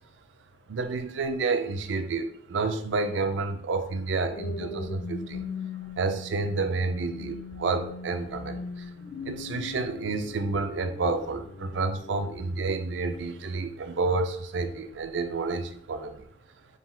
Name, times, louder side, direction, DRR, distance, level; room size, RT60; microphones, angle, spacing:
voice 1, 0.7-5.4 6.0-8.9 9.2-16.2, right 3 dB, 65° right, 9 dB, 0.4 m, -29 dB
sound 1, 3.9-14.4 14.9-15.2, left 4 dB, 60° left, 0.3 m, -41 dB
3.8 x 2.3 x 4.1 m, 0.68 s
head